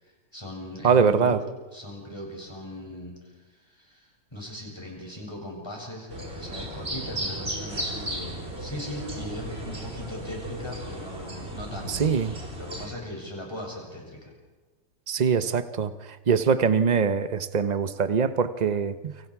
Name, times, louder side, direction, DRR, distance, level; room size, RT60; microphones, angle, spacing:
voice 1, 0.0-1.4 1.7-3.2 3.5-12.1 12.5-14.3, left 1 dB, 10° left, -1 dB, 7.2 m, -39 dB
voice 2, 0.8-1.4 11.9-12.3 15.1-15.9 16.3-19.1, right 6 dB, 50° right, 11 dB, 0.5 m, -23 dB
sound 1, 6.1-12.9, right 1 dB, 30° right, 3.9 m, -35 dB
29.5 x 26.5 x 4.8 m, 1.2 s
omnidirectional pair, 2.1 m